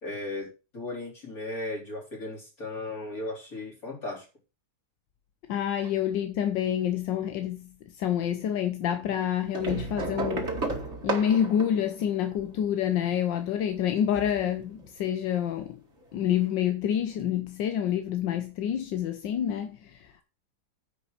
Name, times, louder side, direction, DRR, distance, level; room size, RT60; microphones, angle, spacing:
voice 1, 0.0-4.3 5.8-5.9, left 2 dB, 50° left, 4.3 m, -36 dB
voice 2, 5.5-10.6 11.0-15.8 16.1-20.2, left 10 dB, 85° left, 1.6 m, -28 dB
sound 1, 9.5-12.8 14.0-14.9 16.0-16.1 16.4-16.5, right 3 dB, 40° right, 2.2 m, -33 dB
9.6 x 5.7 x 6.6 m
omnidirectional pair, 1.9 m